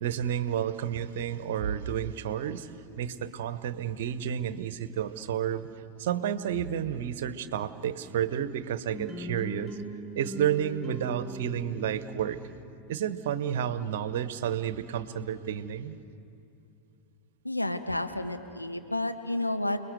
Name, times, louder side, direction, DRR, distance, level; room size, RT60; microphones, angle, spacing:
voice 1, 0.0-2.7 3.0-5.7 6.0-9.8 10.1-12.4 12.9-16.0, right 9 dB, 55° right, 14 dB, 1.1 m, -31 dB
sound 1, 8.9-12.9, right 1 dB, ahead, 1.6 m, -40 dB
voice 2, 17.4-19.8, left 1 dB, 85° left, 6 dB, 1.4 m, -31 dB
29.5 x 20.5 x 8.0 m, 2.6 s
figure-of-eight pair, 90°, 0 cm